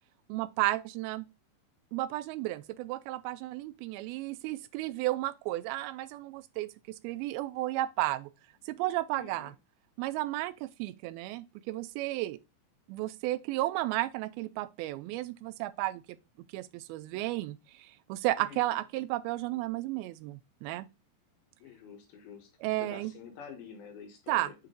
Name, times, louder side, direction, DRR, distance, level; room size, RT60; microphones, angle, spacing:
voice 1, 0.3-1.3 1.9-6.7 7.0-8.3 8.7-9.5 10.0-12.4 12.9-16.2 16.5-20.9 22.6-23.1 24.3-24.5, right 17 dB, 85° right, 2.4 m, -33 dB
voice 2, 9.2-9.6 18.4-18.8 21.6-24.5, left 6 dB, 80° left, 3.2 m, -48 dB
7.3 x 3.7 x 3.8 m
omnidirectional pair, 4.3 m